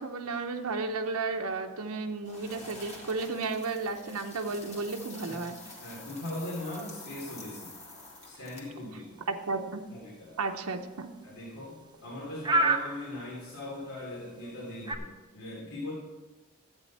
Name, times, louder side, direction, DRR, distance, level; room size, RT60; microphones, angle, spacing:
voice 1, 0.0-5.6 9.3-9.8 10.4-11.1, right 3 dB, 80° right, 4 dB, 0.8 m, -33 dB
sound 1, 2.2-15.0, right 2 dB, 20° right, 0.7 m, -38 dB
sound 2, 2.3-8.8, left 3 dB, 30° left, 1.9 m, -48 dB
voice 2, 5.8-7.7 8.2-9.1 9.9-10.3 11.2-15.9, left 1 dB, 75° left, -6 dB, 3.1 m, -40 dB
12.5 x 8.5 x 4.2 m, 1.2 s
head